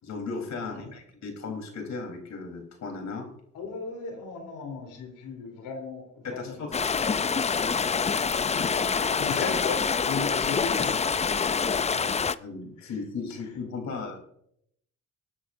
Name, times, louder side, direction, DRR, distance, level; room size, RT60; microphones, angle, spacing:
voice 1, 0.0-3.3 6.2-6.8 12.4-14.2, left 4 dB, 65° left, 3 dB, 3.6 m, -36 dB
voice 2, 0.6-0.9 3.5-7.0 8.3-11.0 11.5-12.0 12.8-12.9, left 4 dB, 85° left, 3 dB, 3.4 m, -37 dB
sound 1, 6.7-12.3, left 6 dB, 20° left, 0.4 m, -26 dB
20.0 x 10.0 x 2.6 m, 0.74 s
cardioid pair, 90°, 30 cm